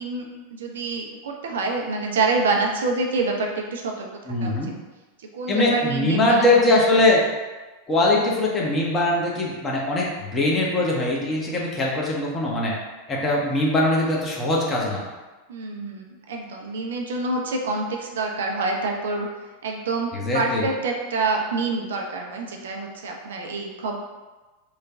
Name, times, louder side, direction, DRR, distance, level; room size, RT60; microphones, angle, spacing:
voice 1, 0.0-4.1 4.4-4.7 5.3-6.5 13.4-13.5 15.5-19.3 19.6-24.0, right 3 dB, 65° right, 1 dB, 0.5 m, -27 dB
voice 2, 4.3-4.7 5.5-7.2 7.9-12.7 13.1-15.0 20.1-20.6, left 2 dB, 20° left, -3 dB, 0.8 m, -21 dB
3.1 x 2.2 x 3.5 m, 1.2 s
figure-of-eight pair, 85°, 0 cm